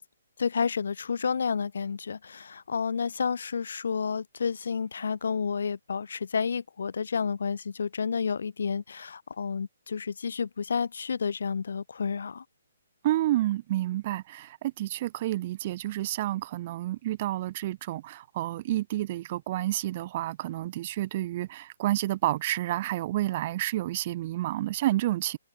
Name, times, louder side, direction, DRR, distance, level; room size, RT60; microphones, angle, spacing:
voice 1, 0.4-12.4, left 6 dB, 65° left, 0.7 m, -30 dB
voice 2, 13.0-25.4, right 15 dB, 40° right, 1.3 m, -29 dB
figure-of-eight pair, 135°, 0 cm